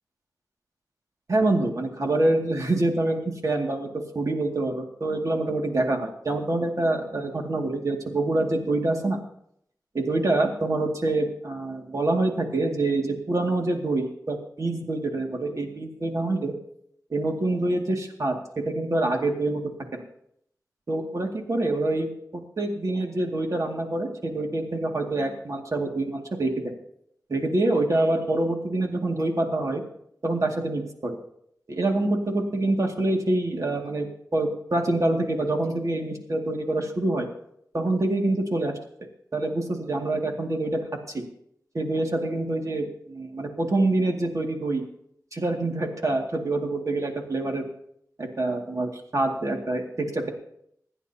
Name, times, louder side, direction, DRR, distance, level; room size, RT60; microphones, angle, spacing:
voice 1, 1.3-9.2 9.9-16.5 17.1-18.3 18.7-19.6 19.9-20.0 20.9-22.1 22.6-26.5 27.3-29.8 30.2-31.2 31.7-34.1 34.3-37.3 37.7-38.7 39.3-40.8 41.1-41.2 41.7-44.8 45.3-47.6 48.2-49.9 50.1-50.3, right 2 dB, 55° right, 1 dB, 2.3 m, -26 dB
26.5 x 10.5 x 2.9 m, 0.71 s
wide cardioid pair, 95°, 7 cm